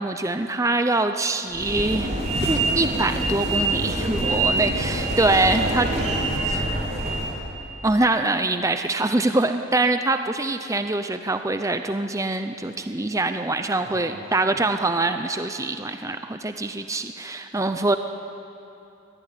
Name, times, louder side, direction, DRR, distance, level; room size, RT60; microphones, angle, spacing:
voice 1, 0.0-2.1 2.4-5.9 6.5-6.6 7.8-18.0, right 2 dB, 15° right, 8 dB, 0.6 m, -24 dB
sound 1, 1.5-7.4, right 2 dB, 30° right, 3.4 m, -25 dB
voice 2, 4.1-5.2 5.4-8.0 13.8-14.6, right 1 dB, 45° right, 0 dB, 5.2 m, -38 dB
22.5 x 18.0 x 10.0 m, 2.8 s
head